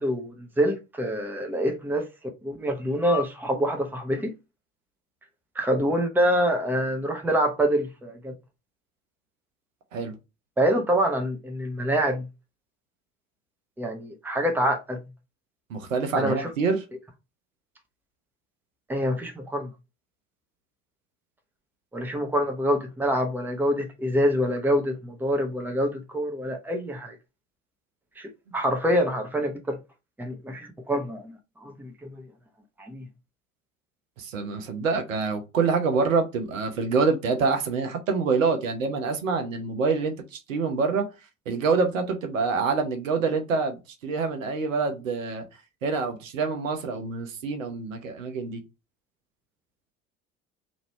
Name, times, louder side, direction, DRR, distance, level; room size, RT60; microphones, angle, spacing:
voice 1, 0.0-2.1 2.4-4.3 5.6-8.3 10.6-12.3 13.8-15.1 16.2-16.5 18.9-19.7 21.9-27.2 28.2-29.8 30.2-32.2 32.8-33.1, equal, 5° right, 0.8 m, -26 dB
voice 2, 15.7-16.8 34.2-41.1 41.5-45.4 45.8-48.6, right 4 dB, 80° right, 0.9 m, -26 dB
3.0 x 2.6 x 4.1 m
figure-of-eight pair, 60°, 39 cm